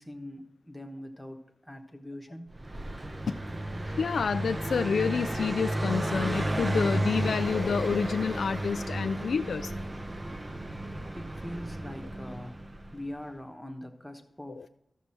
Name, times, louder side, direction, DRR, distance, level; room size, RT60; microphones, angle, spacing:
voice 1, 0.0-2.6 11.1-12.6 12.9-14.7, left 1 dB, ahead, 4 dB, 1.2 m, -42 dB
Car passing by, 2.5-13.1, right 1 dB, 25° right, 0.7 m, -33 dB
voice 2, 3.9-9.8 14.6-14.7, left 6 dB, 90° left, 8 dB, 0.3 m, -29 dB
13.5 x 6.7 x 4.4 m, 0.84 s
wide cardioid pair, 100°, 0 cm